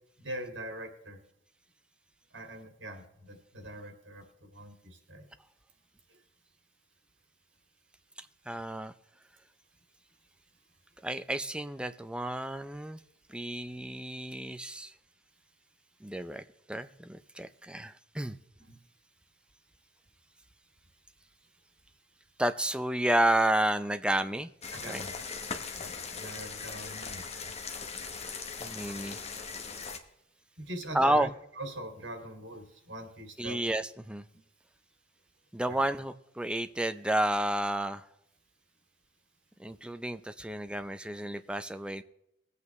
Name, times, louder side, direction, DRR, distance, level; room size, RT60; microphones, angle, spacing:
voice 1, 0.2-1.2 2.3-5.3 18.7-18.8 24.7-25.2 25.7-27.5 30.6-31.3 31.6-33.7 35.7-35.8, right 1 dB, 85° right, 2.5 m, -42 dB
voice 2, 8.5-8.9 11.0-13.0 13.3-14.9 16.0-18.4 22.4-24.5 24.8-25.1 28.6-29.2 30.9-31.3 33.4-34.3 35.5-38.0 39.6-42.0, right 1 dB, 5° right, 0.5 m, -31 dB
sound 1, 24.6-30.0, left 5 dB, 35° left, 1.2 m, -39 dB
21.0 x 8.3 x 3.2 m
head